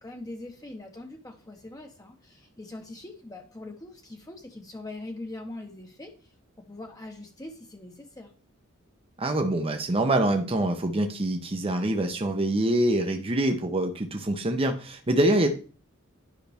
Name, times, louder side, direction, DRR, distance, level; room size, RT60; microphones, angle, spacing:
voice 1, 0.0-8.3, left 2 dB, 15° left, 3 dB, 0.9 m, -42 dB
voice 2, 9.2-15.5, right 1 dB, 25° right, 4 dB, 0.8 m, -25 dB
10.5 x 5.7 x 3.5 m, 0.39 s
head